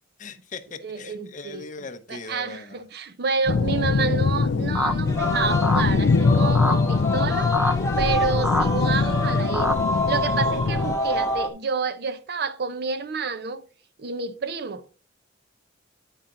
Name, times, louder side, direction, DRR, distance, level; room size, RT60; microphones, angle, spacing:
voice 1, 0.2-2.8, left 4 dB, 40° left, 0.7 m, -39 dB
voice 2, 0.8-1.7 2.1-9.8 10.1-13.6 14.0-14.8, right 5 dB, 55° right, 0.6 m, -29 dB
sound 1, 3.5-10.9, left 4 dB, 85° left, 0.5 m, -23 dB
sound 2, 4.7-4.9 5.6-5.9 6.5-6.8 7.5-7.7 8.4-8.7 9.5-9.8, left 1 dB, 5° right, 0.6 m, -24 dB
Singing, 5.1-11.5, left 1 dB, 15° left, 1.0 m, -27 dB
9.1 x 5.7 x 3.7 m
head